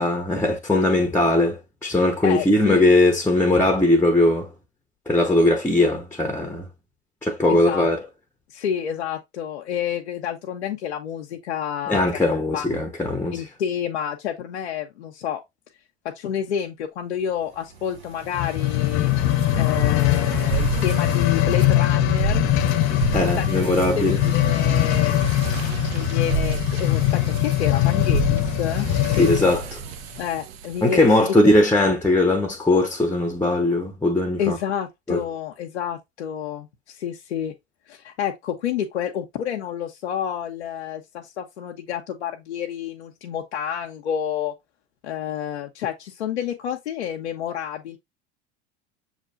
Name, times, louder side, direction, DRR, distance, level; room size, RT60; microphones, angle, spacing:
voice 1, 0.0-4.5 5.1-6.6 7.2-8.0 11.9-13.4 23.1-24.2 29.2-29.8 30.8-34.6 35.1-35.2, left 2 dB, 5° left, 0.7 m, -19 dB
voice 2, 2.2-2.8 7.5-7.9 8.5-12.0 12.5-12.7 13.3-15.4 16.0-19.1 19.5-22.4 22.9-25.2 25.9-29.3 30.2-31.6 34.4-37.5 37.9-44.5 45.0-48.0, left 9 dB, 85° left, 0.7 m, -29 dB
sound 1, 17.8-31.2, right 7 dB, 65° right, 0.7 m, -30 dB
sound 2, 18.3-29.6 30.2-30.3, left 17 dB, 45° left, 0.4 m, -22 dB
6.5 x 3.2 x 2.4 m
hypercardioid pair, 85°, 33 cm